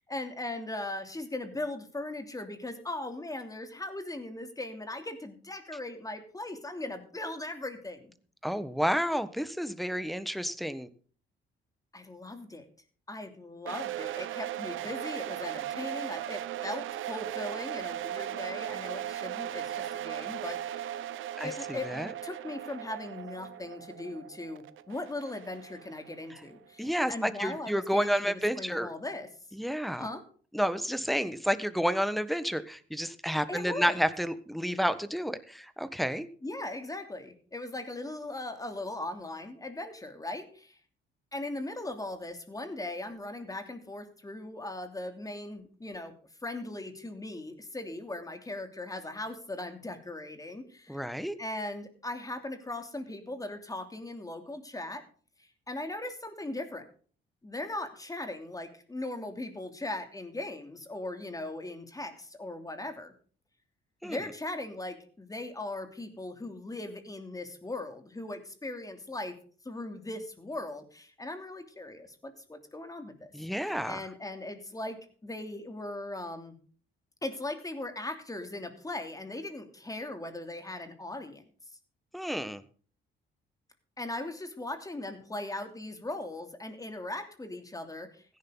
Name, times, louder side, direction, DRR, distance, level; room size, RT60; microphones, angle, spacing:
voice 1, 0.1-8.1 11.9-12.7 13.1-21.0 21.4-29.3 30.0-30.2 33.3-34.0 36.4-40.8 41.3-46.1 46.4-51.0 51.4-55.1 55.4-56.8 57.4-63.1 64.0-69.3 69.6-73.3 73.6-76.6 77.2-81.4 84.0-88.2, left 2 dB, 15° left, 7 dB, 3.0 m, -39 dB
voice 2, 8.4-10.9 21.4-22.1 26.8-28.9 29.6-30.0 30.5-36.3 50.9-51.4 64.0-64.2 73.3-74.0 82.1-82.6, equal, ahead, 11 dB, 1.3 m, -30 dB
sound 1, 13.7-26.5, right 11 dB, 80° right, 0.9 m, -38 dB
16.0 x 11.0 x 3.9 m, 0.42 s
cardioid pair, 90°, 20 cm